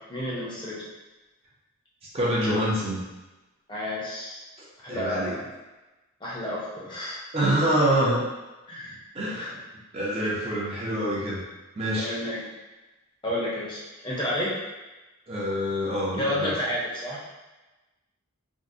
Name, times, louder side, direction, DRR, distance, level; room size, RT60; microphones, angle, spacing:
voice 1, 0.1-0.8 3.7-4.4 4.8-5.4 6.2-7.2 8.7-9.0 9.3-9.5 12.0-12.5 13.2-14.6 16.2-17.2, left 1 dB, 20° left, -6 dB, 0.6 m, -31 dB
voice 2, 2.1-3.0 4.9-5.3 7.3-8.2 9.1-9.5 9.9-11.4 11.8-12.1 15.3-16.5, right 1 dB, 30° right, -5 dB, 0.5 m, -26 dB
3.6 x 2.0 x 2.5 m, 1.1 s
head